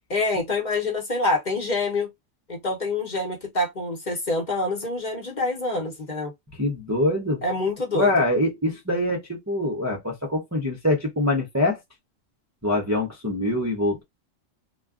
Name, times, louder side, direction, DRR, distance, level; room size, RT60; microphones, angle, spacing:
voice 1, 0.1-2.1 2.5-6.3 7.4-8.1, left 2 dB, 40° left, 1.0 m, -26 dB
voice 2, 6.6-7.4 7.9-11.8 12.6-14.0, left 1 dB, 20° right, 0.5 m, -24 dB
2.3 x 2.2 x 3.6 m
omnidirectional pair, 1.3 m